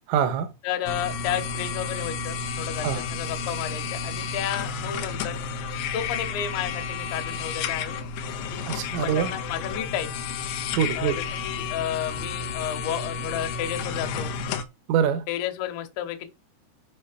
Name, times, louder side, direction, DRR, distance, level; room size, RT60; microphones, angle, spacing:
voice 1, 0.1-0.5 2.8-3.1 8.7-9.3 10.8-11.2 14.9-15.2, right 8 dB, 80° right, 3.8 m, -24 dB
voice 2, 0.6-5.4 5.9-8.0 8.5-8.7 9.0-10.2 11.0-14.3 15.3-16.3, left 10 dB, 75° left, 3.0 m, -32 dB
sound 1, 0.9-14.6, left 5 dB, 90° left, 2.2 m, -31 dB
9.6 x 5.2 x 5.0 m
omnidirectional pair, 5.8 m